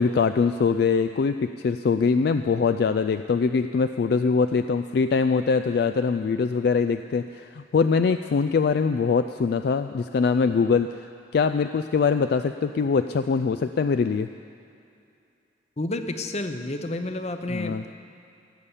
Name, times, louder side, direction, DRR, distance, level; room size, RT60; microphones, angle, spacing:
voice 1, 0.0-14.3 17.5-17.8, left 5 dB, 60° left, 9 dB, 0.3 m, -23 dB
voice 2, 15.8-17.9, left 2 dB, 35° left, 7 dB, 0.8 m, -30 dB
16.5 x 8.2 x 7.1 m, 2.6 s
head